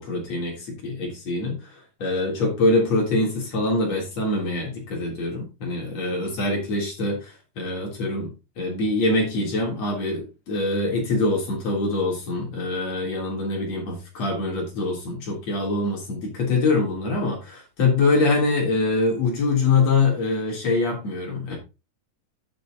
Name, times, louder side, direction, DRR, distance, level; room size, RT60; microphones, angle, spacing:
voice 1, 0.0-21.6, left 3 dB, 50° left, 4.3 m, -24 dB
9.5 x 6.7 x 4.0 m
omnidirectional pair, 4.1 m